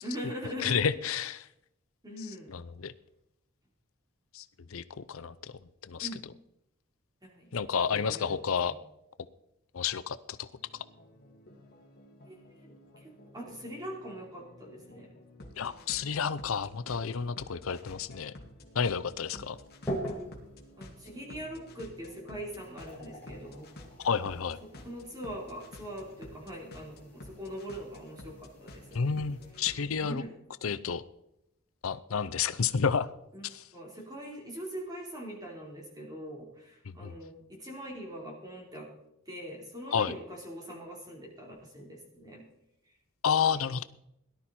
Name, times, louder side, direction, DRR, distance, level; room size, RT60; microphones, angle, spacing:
voice 1, 0.0-0.8 2.0-2.5 6.0-6.2 7.2-7.5 7.7-8.4 12.2-12.4 12.6-15.2 20.8-23.7 24.6-28.8 30.0-30.4 33.3-38.9 39.3-42.4, equal, 20° right, -1 dB, 4.1 m, -42 dB
voice 2, 0.6-1.5 2.5-2.9 4.3-4.4 4.7-4.8 5.1-5.5 5.9-6.1 7.5-8.7 9.7-10.5 15.6-18.3 18.7-19.6 24.0-24.6 28.9-30.2 30.6-31.0 31.8-33.1 33.4-33.6 37.0-37.1 39.9-40.1 43.2-43.8, left 6 dB, 75° left, 14 dB, 0.6 m, -30 dB
sound 1, 10.6-30.2, left 1 dB, 50° left, 2.3 m, -51 dB
sound 2, 19.2-29.5, right 1 dB, 10° left, 4.2 m, -45 dB
18.0 x 12.0 x 4.3 m, 0.82 s
head